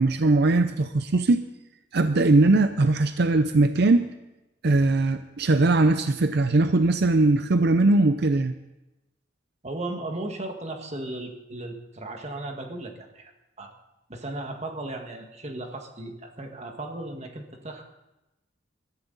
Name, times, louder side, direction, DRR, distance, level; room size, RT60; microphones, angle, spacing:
voice 1, 0.0-1.4 1.9-4.1 4.6-8.5, right 2 dB, 60° right, 10 dB, 0.6 m, -20 dB
voice 2, 9.6-13.3 13.6-13.7 14.1-17.8, right 2 dB, 35° right, 3 dB, 1.7 m, -36 dB
21.0 x 14.0 x 4.0 m, 0.98 s
head